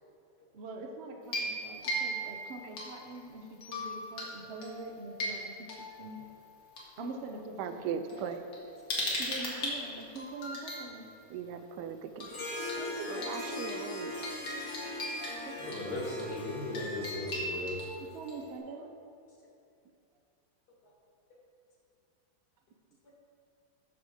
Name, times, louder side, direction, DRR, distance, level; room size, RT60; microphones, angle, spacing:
voice 1, 0.5-5.5 5.8-6.3 7.0-8.3 9.2-11.1 12.8-13.7 15.4-16.1 18.0-18.9, right 3 dB, 55° right, 2 dB, 0.7 m, -44 dB
sound 1, 1.2-3.2 3.6-4.3 4.6-6.8 7.6-7.7 8.1-10.8 12.2-12.4 12.7-12.8 13.1-18.6, equal, 80° left, 2.2 m, -39 dB
voice 2, 7.6-8.4 11.3-12.6 13.1-14.3, right 7 dB, 75° right, 9 dB, 1.2 m, -39 dB
Harp, 12.2-18.0, left 2 dB, 20° left, 0.9 m, -41 dB
voice 3, 15.6-17.8, left 2 dB, 60° left, -2 dB, 2.1 m, -37 dB
8.0 x 6.5 x 4.9 m, 2.6 s
omnidirectional pair, 1.9 m